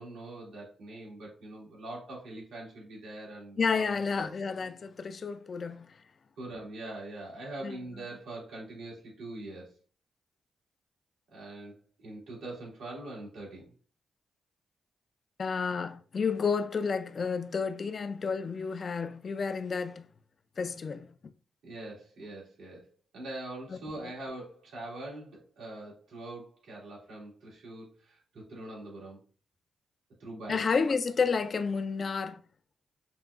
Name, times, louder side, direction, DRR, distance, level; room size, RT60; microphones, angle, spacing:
voice 1, 0.0-3.9 4.1-4.3 6.4-9.8 11.3-13.7 21.6-22.9 23.1-29.2 30.2-30.6, right 2 dB, 85° right, 2.0 m, -43 dB
voice 2, 3.6-5.9 7.6-7.8 15.4-20.1 20.6-21.1 23.7-23.8 30.5-32.4, left 5 dB, 50° left, 0.3 m, -30 dB
5.8 x 2.3 x 2.4 m
cardioid pair, 70°, 0 cm